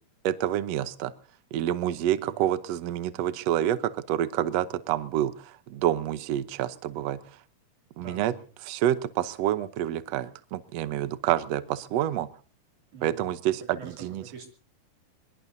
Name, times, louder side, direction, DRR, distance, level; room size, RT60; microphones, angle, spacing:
voice 1, 0.2-1.1 1.5-7.2 8.0-8.3 8.7-12.3 13.0-14.2, right 12 dB, 80° right, 13 dB, 1.4 m, -28 dB
voice 2, 2.2-2.5 8.0-8.4 12.9-13.3 13.6-14.5, right 5 dB, 55° right, 2 dB, 4.1 m, -46 dB
23.5 x 22.0 x 2.7 m, 0.41 s
omnidirectional pair, 4.2 m